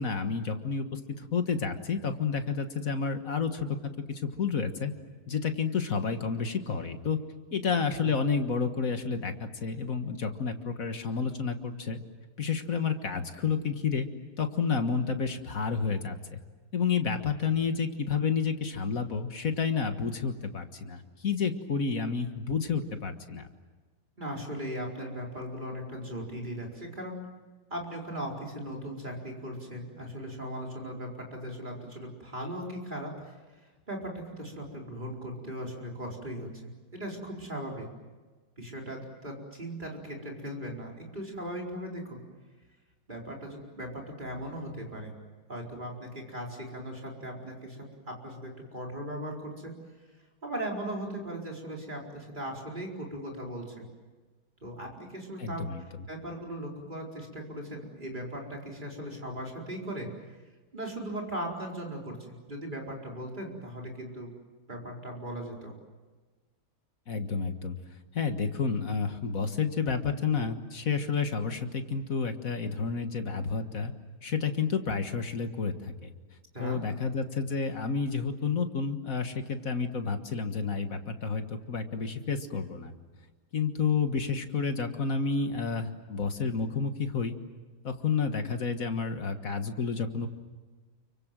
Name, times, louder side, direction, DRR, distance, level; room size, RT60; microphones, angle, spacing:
voice 1, 0.0-4.9 5.3-7.2 7.5-12.0 12.4-14.1 14.4-16.4 16.7-23.5 55.4-55.8 67.1-67.8 68.1-73.9 74.2-76.1 76.6-82.9 83.5-87.3 87.8-90.3, left 5 dB, 45° left, 7 dB, 1.8 m, -30 dB
voice 2, 24.2-27.2 27.7-33.4 33.9-36.5 36.9-37.9 38.6-42.2 43.1-45.1 45.5-49.7 50.4-53.8 54.6-55.6 56.1-60.1 60.7-64.3 64.7-65.7 76.5-76.8, right 1 dB, 20° right, -1 dB, 4.7 m, -38 dB
29.5 x 24.0 x 7.6 m, 1.3 s
omnidirectional pair, 2.2 m